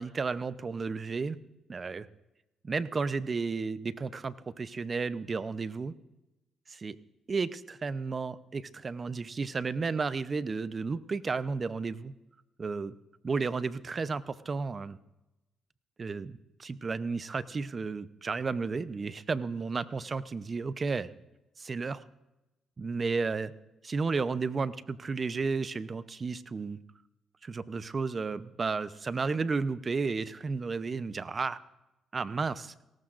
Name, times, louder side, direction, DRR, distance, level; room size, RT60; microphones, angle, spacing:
voice 1, 0.0-1.4 1.7-2.1 2.7-5.9 6.7-7.0 7.3-12.1 12.6-13.0 13.2-15.0 16.0-21.1 21.6-22.0 22.8-23.5 23.8-26.8 27.4-31.6 32.1-32.7, right 4 dB, 35° right, 15 dB, 0.7 m, -33 dB
18.5 x 18.0 x 2.5 m, 0.97 s
cardioid pair, 90°, 0 cm